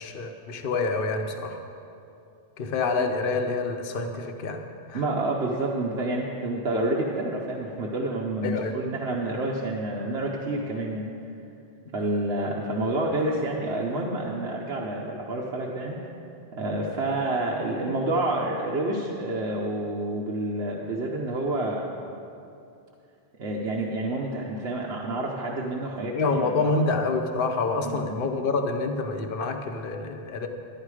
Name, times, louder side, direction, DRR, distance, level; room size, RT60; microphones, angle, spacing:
voice 1, 0.0-1.6 2.6-5.0 8.4-8.7 26.1-30.5, left 3 dB, 60° left, 5 dB, 1.0 m, -27 dB
voice 2, 4.9-11.1 11.9-16.0 16.5-21.9 23.4-26.7 27.8-28.2, right 2 dB, 80° right, -3 dB, 1.2 m, -28 dB
11.5 x 11.0 x 4.8 m, 2.6 s
omnidirectional pair, 1.1 m